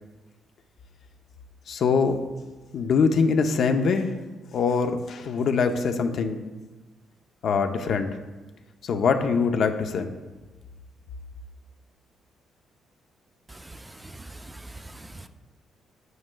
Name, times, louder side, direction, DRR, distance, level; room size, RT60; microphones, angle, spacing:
voice 1, 1.7-2.2 2.7-4.1 4.5-6.4 7.4-8.1 8.8-10.1, left 5 dB, 65° left, 6 dB, 0.6 m, -23 dB
voice 2, 13.5-15.3, right 2 dB, 15° right, 8 dB, 0.4 m, -43 dB
9.3 x 7.6 x 2.2 m, 1.2 s
cardioid pair, 90°, 0 cm